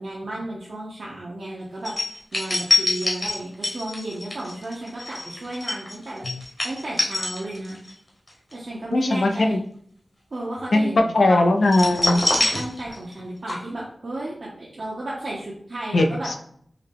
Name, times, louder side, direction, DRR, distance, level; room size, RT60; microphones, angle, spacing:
voice 1, 0.0-7.8 8.5-9.6 10.3-11.5 12.3-16.3, right 1 dB, 70° right, -6 dB, 0.7 m, -33 dB
sound 1, 1.9-7.9 8.3-8.5 11.7-13.2 13.5-13.6, left 2 dB, 45° left, 1.0 m, -25 dB
voice 2, 8.9-9.6 10.7-10.9 11.1-12.2 15.9-16.4, left 2 dB, 80° left, 4 dB, 0.4 m, -19 dB
3.7 x 2.1 x 3.4 m, 0.63 s
wide cardioid pair, 55°, 0 cm